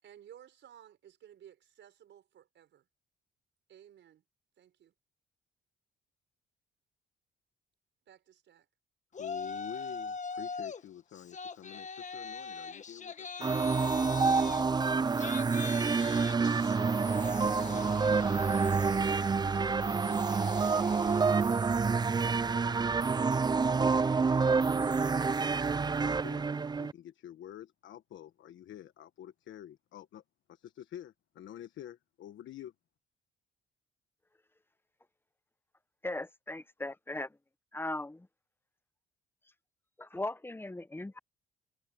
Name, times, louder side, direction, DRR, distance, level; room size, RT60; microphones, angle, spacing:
voice 1, 0.0-2.9 3.7-4.2 4.6-4.9 8.1-8.7, right 10 dB, 70° right, 6.0 m, -56 dB
Yell, 9.1-10.8 11.1-21.6, left 5 dB, 35° left, 1.5 m, -43 dB
voice 2, 9.2-13.6 16.9-21.4 22.0-23.0 23.3-26.4 26.7-30.2 30.5-32.7, left 11 dB, 75° left, 1.3 m, -50 dB
sound 1, 13.4-26.9, right 4 dB, 20° right, 0.5 m, -28 dB
voice 3, 36.0-37.3 37.7-38.3 40.0-41.2, left 2 dB, 10° left, 1.0 m, -38 dB
cardioid pair, 90°, 20 cm